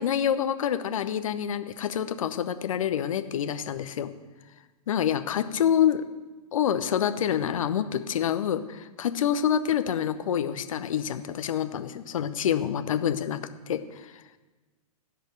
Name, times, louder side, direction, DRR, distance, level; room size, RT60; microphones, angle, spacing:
voice 1, 0.0-4.1 4.9-6.0 6.5-14.4, left 9 dB, 55° left, 10 dB, 0.9 m, -27 dB
16.0 x 5.4 x 7.9 m, 1.2 s
figure-of-eight pair, 105°, 20 cm